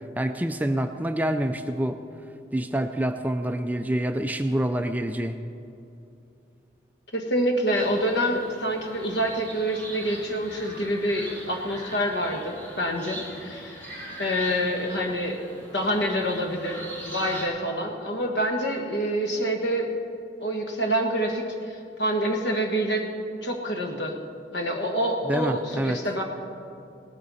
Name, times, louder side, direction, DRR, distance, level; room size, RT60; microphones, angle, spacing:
voice 1, 0.2-2.0 2.5-5.4 25.2-26.0, right 1 dB, 10° right, 8 dB, 0.4 m, -26 dB
voice 2, 7.1-13.8 14.2-15.4 15.7-16.8 17.1-19.9 20.4-21.4 22.0-23.1 23.4-24.2 24.5-26.2, equal, 75° left, 3 dB, 1.5 m, -26 dB
sound 1, 7.7-17.4, right 1 dB, 10° left, 3.1 m, -41 dB
18.0 x 13.0 x 4.1 m, 2.7 s
head